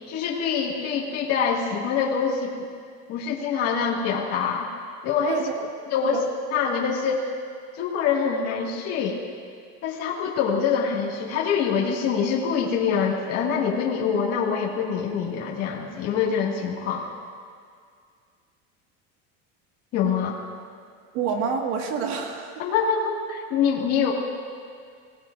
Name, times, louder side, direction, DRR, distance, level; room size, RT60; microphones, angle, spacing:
voice 1, 0.1-2.7 3.1-4.7 5.0-5.4 5.9-6.2 6.5-7.3 7.7-9.2 9.8-17.1 19.9-20.4 22.6-24.1, left 6 dB, 40° left, -4 dB, 2.2 m, -25 dB
voice 2, 5.3-5.7 6.0-6.2 21.1-22.6, right 6 dB, 70° right, 2 dB, 1.9 m, -28 dB
24.0 x 18.0 x 2.6 m, 2.2 s
cardioid pair, 155°, 37 cm